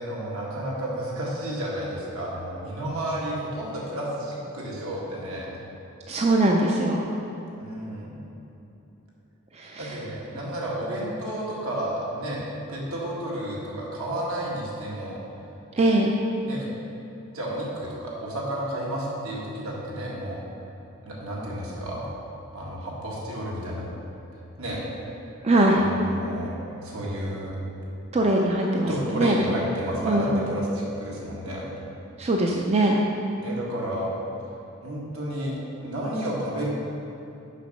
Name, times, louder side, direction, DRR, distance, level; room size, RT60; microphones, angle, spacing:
voice 1, 0.0-5.5 7.6-8.2 9.8-15.2 16.4-16.6 17.3-20.4 21.0-22.0 22.5-23.9 24.6-24.8 25.7-26.5 26.8-27.6 28.9-31.6 33.4-34.1 34.8-36.7, right 1 dB, 75° right, -5 dB, 1.8 m, -31 dB
voice 2, 6.1-7.0 9.5-9.9 15.7-16.2 25.4-25.8 28.1-29.6 30.0-30.5 32.2-33.0, right 1 dB, 30° right, 0 dB, 0.4 m, -22 dB
6.5 x 6.0 x 5.3 m, 3.0 s
head